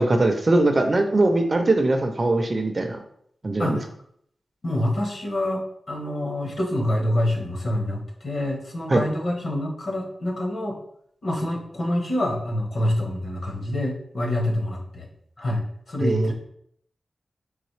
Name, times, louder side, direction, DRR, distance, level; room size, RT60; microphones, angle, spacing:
voice 1, 0.0-3.0 3.4-3.8 8.9-9.0 16.0-16.3, right 2 dB, 30° right, 5 dB, 0.4 m, -21 dB
voice 2, 4.6-10.8 11.2-15.1 15.4-16.3, left 1 dB, 55° left, 0 dB, 1.0 m, -26 dB
3.9 x 3.0 x 3.2 m, 0.67 s
wide cardioid pair, 160°, 0 cm